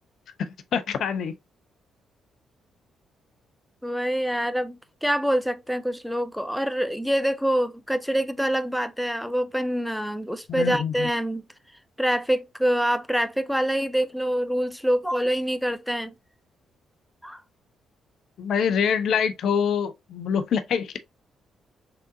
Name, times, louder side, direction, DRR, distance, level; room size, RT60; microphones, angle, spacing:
voice 1, 0.4-1.4 10.5-11.1 18.4-21.0, left 7 dB, 60° left, 0.4 m, -25 dB
voice 2, 3.8-11.5 12.0-16.1 17.2-17.4, equal, ahead, 0.5 m, -25 dB
3.8 x 3.4 x 2.6 m
hypercardioid pair, 45°, 0 cm